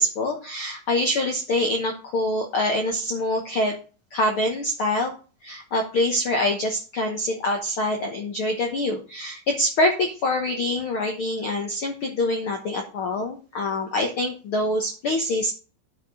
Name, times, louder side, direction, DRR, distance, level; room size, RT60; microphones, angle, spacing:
voice 1, 0.0-3.7 4.1-5.1 5.4-15.5, left 1 dB, 75° left, 3 dB, 1.2 m, -25 dB
9.9 x 5.1 x 4.8 m, 0.36 s
omnidirectional pair, 4.2 m